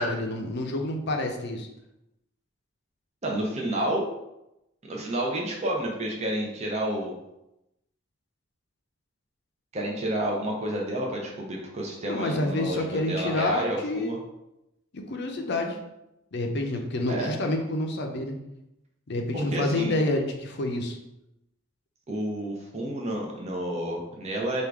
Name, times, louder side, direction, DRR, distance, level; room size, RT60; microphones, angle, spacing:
voice 1, 0.0-1.7 12.1-14.1 14.9-15.8 16.3-18.3 19.1-21.0, left 2 dB, 55° left, 3 dB, 0.6 m, -28 dB
voice 2, 3.2-4.1 4.9-7.1 9.7-14.2 17.1-17.3 19.3-19.9 22.1-24.6, right 1 dB, 35° right, -1 dB, 0.7 m, -30 dB
3.6 x 2.5 x 4.6 m, 0.88 s
head